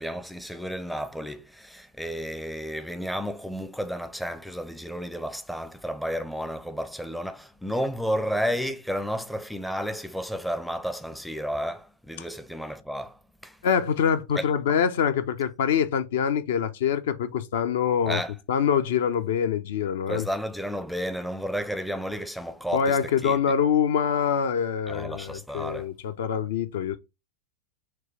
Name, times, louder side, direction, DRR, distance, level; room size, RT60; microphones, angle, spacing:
voice 1, 0.0-13.6 14.3-14.4 18.1-18.3 20.1-23.4 24.9-25.9, equal, ahead, 0.5 m, -32 dB
voice 2, 13.6-18.2 18.5-20.2 22.7-27.0, left 7 dB, 55° left, 0.4 m, -25 dB
5.9 x 2.2 x 3.1 m
figure-of-eight pair, 90°, 0 cm